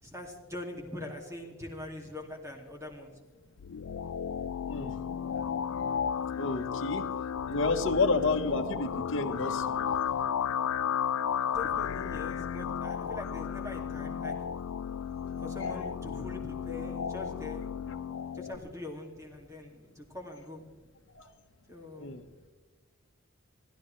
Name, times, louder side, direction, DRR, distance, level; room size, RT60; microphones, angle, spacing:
voice 1, 0.0-3.1 11.5-14.3 15.4-17.7 18.3-20.6 21.7-22.1, left 2 dB, 15° right, 1 dB, 2.4 m, -42 dB
sound 1, 3.6-18.6, left 7 dB, 85° left, 0.4 m, -33 dB
voice 2, 4.6-5.0 6.3-9.8 15.2-15.3 21.1-21.3 22.0-22.2, left 3 dB, 60° left, 4 dB, 1.2 m, -30 dB
25.5 x 16.0 x 3.3 m, 1.3 s
head